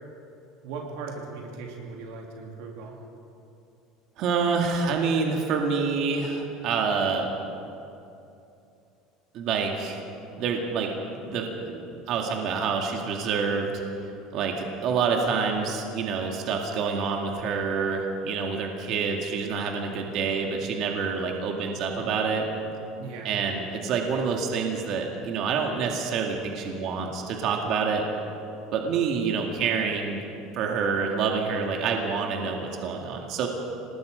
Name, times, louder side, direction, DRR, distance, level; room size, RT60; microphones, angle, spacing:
voice 1, 0.6-3.0 23.0-23.3, right 4 dB, 70° right, 0 dB, 3.0 m, -38 dB
voice 2, 4.2-7.3 9.3-10.0 10.3-10.9 11.2-13.8 14.3-22.5 23.2-28.0 28.7-30.2 30.5-33.5, right 5 dB, 45° right, 1 dB, 2.1 m, -27 dB
27.0 x 19.0 x 5.2 m, 2.8 s
cardioid pair, 170°, 0 cm